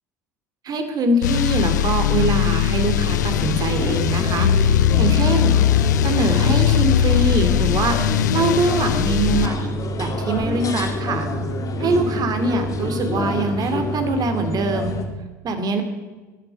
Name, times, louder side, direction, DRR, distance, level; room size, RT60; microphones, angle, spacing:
voice 1, 0.6-5.5 6.0-9.7 10.0-11.3 11.8-14.9 15.4-15.8, right 2 dB, 45° right, 7 dB, 2.5 m, -23 dB
sound 1, 1.2-9.5, left 11 dB, 80° left, 0.5 m, -19 dB
sound 2, 2.9-15.0, left 1 dB, 35° left, 2.2 m, -27 dB
11.0 x 10.5 x 9.0 m, 1.2 s
hypercardioid pair, 70°, 9 cm